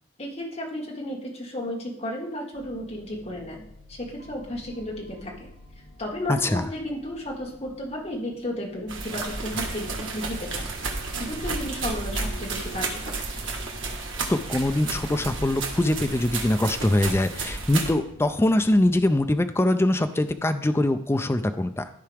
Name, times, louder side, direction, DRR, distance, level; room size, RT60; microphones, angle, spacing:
voice 1, 0.2-5.5 6.0-10.7 11.2-13.2, left 1 dB, 35° left, -1 dB, 1.7 m, -33 dB
sound 1, 2.5-19.2, equal, 80° left, 1.0 m, -47 dB
voice 2, 6.3-6.7 14.3-21.9, left 1 dB, 15° left, 8 dB, 0.4 m, -23 dB
sound 2, 8.9-17.9, right 3 dB, 85° right, 1.6 m, -32 dB
13.5 x 4.7 x 3.4 m, 0.72 s
head